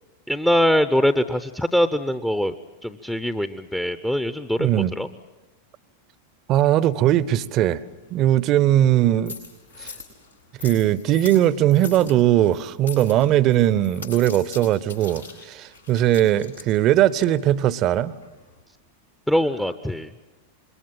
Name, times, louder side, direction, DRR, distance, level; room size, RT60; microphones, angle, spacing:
voice 1, 0.3-2.5 2.8-5.1 19.3-20.1, equal, 5° left, 0.7 m, -22 dB
voice 2, 4.6-4.9 6.5-7.8 8.1-9.3 9.8-9.9 10.6-18.1, right 12 dB, 35° right, 0.8 m, -19 dB
sound 1, 6.6-18.6, left 4 dB, 85° left, 7.5 m, -43 dB
26.5 x 22.5 x 7.4 m
figure-of-eight pair, 90°, 0 cm